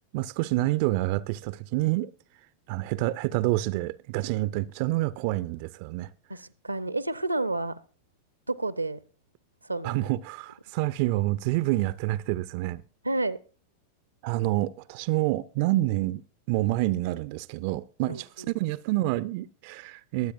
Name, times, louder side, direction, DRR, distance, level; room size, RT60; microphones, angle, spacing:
voice 1, 0.1-2.1 2.7-6.1 9.8-12.8 14.2-16.2 16.5-20.3, right 17 dB, 45° right, 0.4 m, -28 dB
voice 2, 6.3-7.8 8.5-9.0 9.6-10.0 13.0-13.4 18.1-18.5, right 2 dB, 85° right, 0.6 m, -30 dB
21.5 x 8.2 x 2.4 m
figure-of-eight pair, 90°, 0 cm